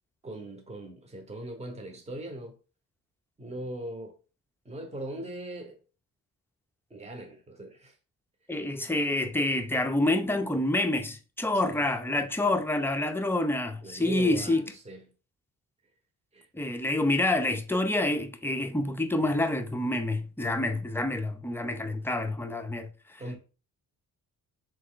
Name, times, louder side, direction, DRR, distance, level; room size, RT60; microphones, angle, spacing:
voice 1, 0.2-2.6 3.4-4.1 4.6-5.8 6.9-8.0 11.7-11.8 13.8-15.0 16.3-16.5 23.2-23.4, right 1 dB, 15° right, 1.0 m, -40 dB
voice 2, 8.5-14.6 16.5-23.2, left 2 dB, 5° left, 0.6 m, -27 dB
3.6 x 3.3 x 3.8 m
cardioid pair, 75°, 37 cm